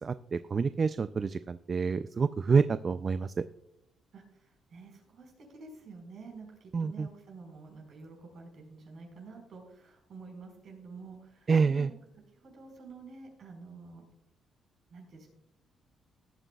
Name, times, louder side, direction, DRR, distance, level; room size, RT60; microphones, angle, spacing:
voice 1, 0.0-3.4 6.7-7.1 11.5-11.9, right 5 dB, 40° right, 13 dB, 0.3 m, -27 dB
voice 2, 4.1-11.9 12.3-14.0 14.9-15.3, right 4 dB, 60° right, 1 dB, 4.8 m, -49 dB
17.5 x 9.1 x 2.3 m, 0.76 s
cardioid pair, 90°, 0 cm